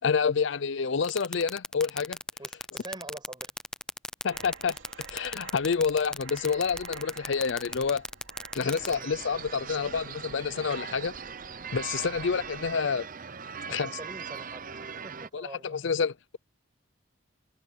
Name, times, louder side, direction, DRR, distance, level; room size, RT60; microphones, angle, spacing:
voice 1, 0.0-2.2 4.2-4.8 5.1-8.0 8.5-11.1 11.7-13.1 13.7-13.9 15.3-16.4, left 5 dB, 65° left, 0.6 m, -28 dB
sound 1, 1.0-8.9, left 1 dB, 5° left, 0.5 m, -35 dB
voice 2, 2.4-3.5 8.9-9.1 12.1-12.2 13.7-15.9, right 2 dB, 25° right, 6.5 m, -45 dB
sound 2, 4.3-12.7, right 4 dB, 65° right, 2.7 m, -48 dB
sound 3, 8.6-15.3, right 6 dB, 45° right, 0.9 m, -40 dB
head